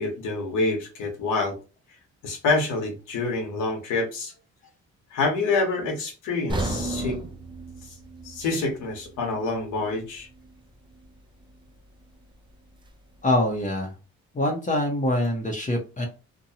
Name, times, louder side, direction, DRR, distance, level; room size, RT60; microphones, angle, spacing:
voice 1, 0.0-1.6 2.2-4.3 5.1-7.2 7.8-7.9 8.2-10.3, left 3 dB, 90° left, 1 dB, 1.0 m, -27 dB
sound 1, 6.5-10.6 10.9-11.1 11.7-11.8, right 2 dB, 15° right, 0.5 m, -34 dB
voice 2, 13.2-13.9 14.3-16.1, left 1 dB, 25° left, 1 dB, 0.8 m, -24 dB
2.7 x 2.2 x 2.7 m, 0.32 s
cardioid pair, 90°, 30 cm